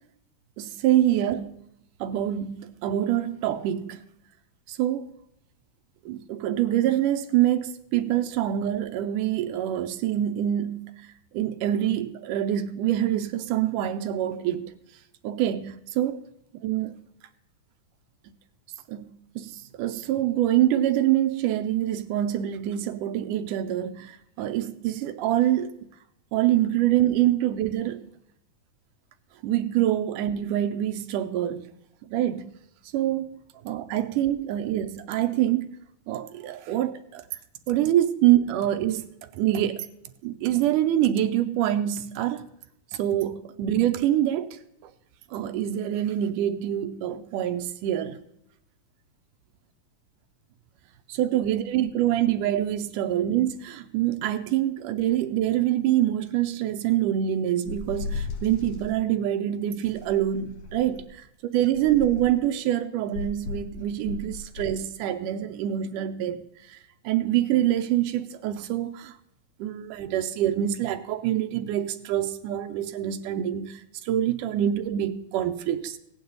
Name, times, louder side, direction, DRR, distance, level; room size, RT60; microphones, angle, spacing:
voice 1, 0.6-1.6 2.0-4.0 4.7-5.0 6.1-11.0 11.3-14.7 15.2-16.2 16.6-16.9 18.9-19.1 19.4-25.7 26.3-28.1 29.4-31.7 32.1-32.5 32.9-33.4 33.7-35.7 36.1-37.2 37.7-39.9 40.2-42.4 42.9-44.5 44.8-44.9 45.3-48.2 51.1-61.2 61.5-66.8 67.0-69.1 69.6-76.0, right 12 dB, 80° right, 2.2 m, -25 dB
sound 1, 57.7-58.9 59.8-61.1 61.7-62.4 63.1-64.8, left 3 dB, 60° left, 2.2 m, -36 dB
16.0 x 10.0 x 4.0 m
omnidirectional pair, 3.8 m